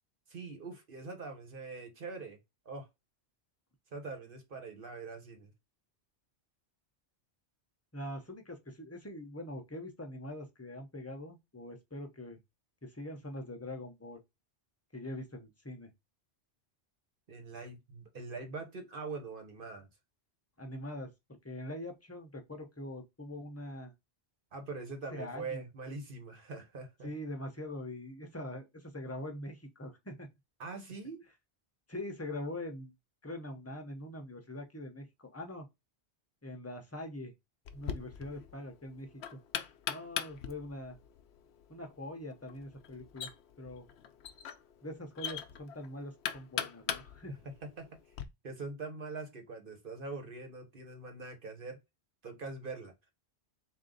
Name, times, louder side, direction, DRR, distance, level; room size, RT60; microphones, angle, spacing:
voice 1, 0.3-2.4 2.6-2.9 3.9-5.5 17.3-19.9 24.5-27.1 30.6-31.2 47.3-47.4 47.6-48.0 48.4-51.8 52.2-53.1, right 3 dB, 55° right, 1.3 m, -43 dB
voice 2, 7.9-12.4 12.8-14.2 14.9-15.9 20.6-23.9 25.1-25.6 27.0-30.3 31.9-32.9 33.2-35.7 36.4-37.3 37.7-39.4 39.9-41.0 41.7-43.3 43.6-43.9 44.8-47.4, left 1 dB, 15° left, 0.7 m, -43 dB
Knock, 37.6-48.2, left 9 dB, 75° left, 0.8 m, -41 dB
3.7 x 2.7 x 3.8 m
omnidirectional pair, 1.1 m